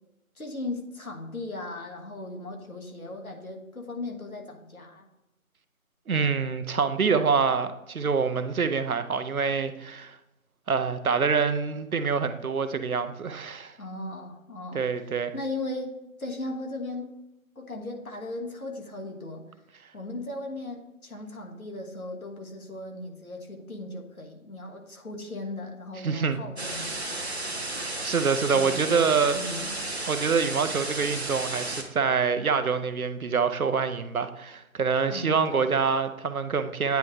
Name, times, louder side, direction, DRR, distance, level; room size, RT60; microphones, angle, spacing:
voice 1, 0.3-5.1 13.8-17.2 17.5-19.5 19.9-27.0 27.7-27.9 28.5-29.8 35.1-35.7, left 2 dB, 80° left, 2 dB, 1.4 m, -37 dB
voice 2, 6.1-10.2 10.7-13.7 14.7-15.3 26.0-26.4 28.0-29.4 30.1-37.0, right 5 dB, 80° right, 10 dB, 0.7 m, -26 dB
sound 1, 26.6-31.8, right 2 dB, 50° right, 0.8 m, -33 dB
9.2 x 3.1 x 3.6 m, 0.93 s
figure-of-eight pair, 175°, 42 cm